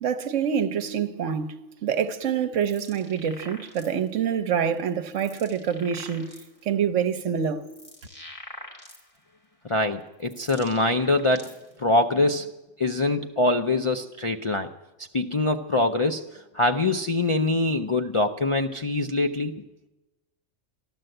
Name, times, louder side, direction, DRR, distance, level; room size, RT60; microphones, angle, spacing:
voice 1, 0.0-6.3 6.6-7.6, right 7 dB, 75° right, 1.2 m, -26 dB
sound 1, 2.3-4.2 4.7-6.6 7.2-9.4 9.9-11.8, left 1 dB, 25° left, 2.3 m, -46 dB
voice 2, 9.6-12.5 12.8-14.7 15.0-19.6, left 2 dB, 45° left, 0.4 m, -24 dB
13.5 x 12.5 x 7.8 m
omnidirectional pair, 1.3 m